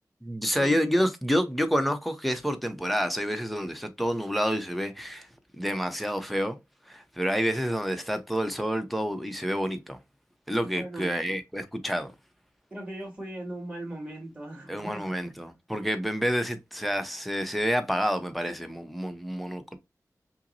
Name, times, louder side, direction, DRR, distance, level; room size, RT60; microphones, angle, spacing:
voice 1, 0.2-5.3 5.6-6.6 6.9-10.0 10.5-12.1 14.7-19.8, equal, ahead, 0.7 m, -28 dB
voice 2, 10.7-11.3 12.7-15.3, right 1 dB, 20° right, 2.0 m, -39 dB
5.5 x 2.0 x 2.6 m
wide cardioid pair, 75°, 6 cm